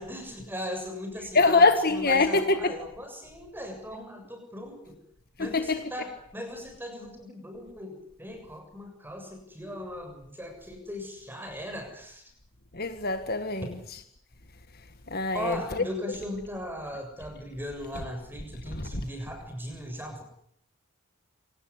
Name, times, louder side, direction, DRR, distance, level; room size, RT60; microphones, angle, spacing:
voice 1, 0.0-5.0 5.4-12.3 15.3-20.2, left 1 dB, 10° right, 7.2 m, -38 dB
voice 2, 1.4-2.7 5.4-5.8 12.7-13.7 15.1-15.8 18.8-18.9, left 3 dB, 45° left, 1.7 m, -24 dB
27.0 x 18.5 x 9.8 m
head